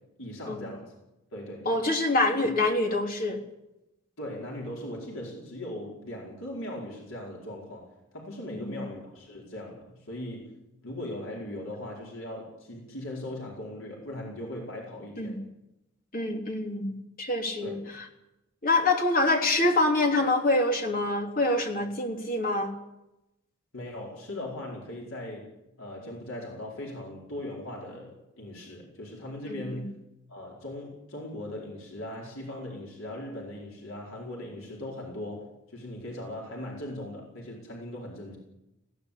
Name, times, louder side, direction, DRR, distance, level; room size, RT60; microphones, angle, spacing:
voice 1, 0.2-0.9 1.3-1.8 4.2-10.5 10.8-15.4 17.6-17.8 23.7-29.9 30.3-38.4, left 1 dB, 75° left, -2 dB, 4.9 m, -39 dB
voice 2, 1.6-3.4 8.5-8.8 15.2-15.4 16.1-17.8 18.6-22.7 29.5-29.8, left 2 dB, 40° left, 2 dB, 3.4 m, -26 dB
20.5 x 17.0 x 8.5 m, 0.90 s
head